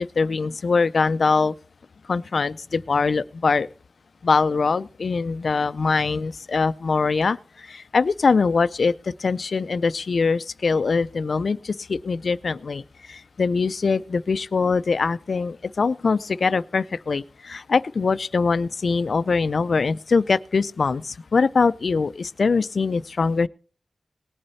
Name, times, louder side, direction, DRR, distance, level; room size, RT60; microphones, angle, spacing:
voice 1, 0.0-1.5 2.1-3.7 4.2-23.5, left 4 dB, 75° left, 0.5 m, -23 dB
19.0 x 8.7 x 4.2 m
wide cardioid pair, 80°, 0 cm